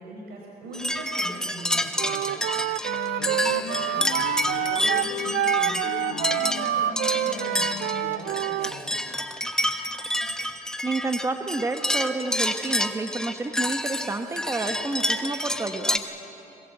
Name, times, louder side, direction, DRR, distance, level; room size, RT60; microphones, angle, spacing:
voice 1, 0.0-2.5 3.2-9.0, right 1 dB, 70° right, -2 dB, 4.3 m, -40 dB
sound 1, 0.7-16.0, left 1 dB, 5° left, 1.1 m, -28 dB
Wind instrument woodwind instrument, 2.0-8.7, right 15 dB, 85° right, 0.4 m, -27 dB
Wind instrument woodwind instrument 2, 2.8-8.4, left 11 dB, 65° left, 0.8 m, -36 dB
voice 2, 10.8-16.0, right 3 dB, 15° right, 7 dB, 1.3 m, -29 dB
22.0 x 19.5 x 8.1 m, 3.0 s
cardioid pair, 110°, 17 cm